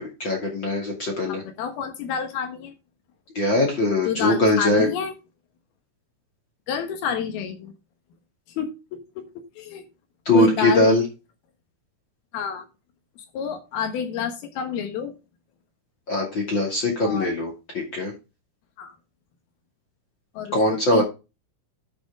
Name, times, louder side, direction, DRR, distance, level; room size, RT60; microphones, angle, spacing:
voice 1, 0.0-1.4 3.3-4.9 10.2-11.0 16.1-18.1 20.5-21.0, left 1 dB, 45° left, 0 dB, 1.5 m, -21 dB
voice 2, 1.3-2.7 4.1-5.1 6.7-7.7 8.5-9.8 10.3-10.9 12.3-12.7 13.3-15.1 17.0-17.3 18.8-19.0 20.3-20.6 20.9-21.0, left 7 dB, 65° left, 7 dB, 2.6 m, -29 dB
11.0 x 6.2 x 3.6 m, 0.27 s
omnidirectional pair, 5.9 m